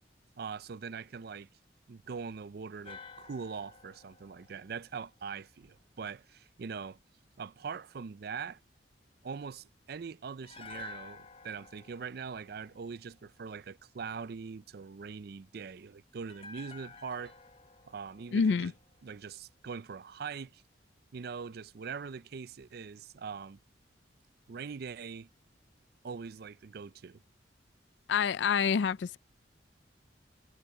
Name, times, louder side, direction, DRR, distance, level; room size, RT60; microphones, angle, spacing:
voice 1, 0.4-1.5 1.9-7.0 7.4-8.6 9.2-17.3 17.9-18.7 19.0-20.6 21.1-23.6 24.5-25.3 26.0-27.2, right 5 dB, 55° right, 0.4 m, -42 dB
sound 1, 2.8-6.0 10.4-13.6 16.3-19.5 19.8-19.9, left 5 dB, 30° left, 0.9 m, -52 dB
voice 2, 18.3-18.7 28.1-29.2, left 6 dB, 70° left, 0.4 m, -27 dB
head